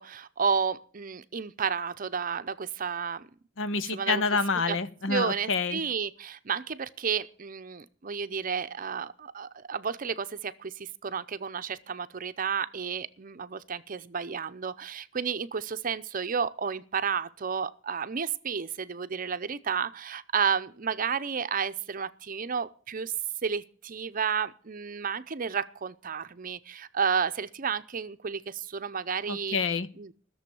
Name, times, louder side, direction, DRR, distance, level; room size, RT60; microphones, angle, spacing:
voice 1, 0.0-3.3 3.7-4.2 4.7-4.8 5.1-23.1 23.4-29.6 30.0-30.1, right 6 dB, 45° right, 0.6 m, -31 dB
voice 2, 3.6-5.8 29.3-29.9, left 4 dB, 85° left, 0.8 m, -28 dB
14.5 x 7.0 x 6.9 m
head